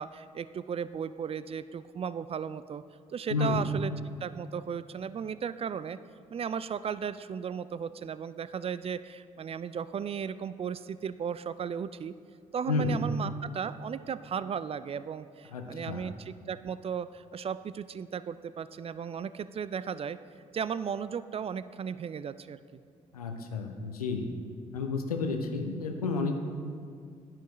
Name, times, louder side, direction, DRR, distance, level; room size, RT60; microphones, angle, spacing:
voice 1, 0.0-2.8 3.1-3.9 4.2-6.0 6.3-12.1 12.5-20.2 20.5-22.8, right 7 dB, 30° right, 15 dB, 0.3 m, -35 dB
voice 2, 3.3-3.6 12.7-12.9 15.5-16.1 23.1-24.3 24.7-26.3, left 4 dB, 90° left, 5 dB, 0.6 m, -31 dB
10.0 x 10.0 x 3.1 m, 2.2 s
figure-of-eight pair, 40°, 19 cm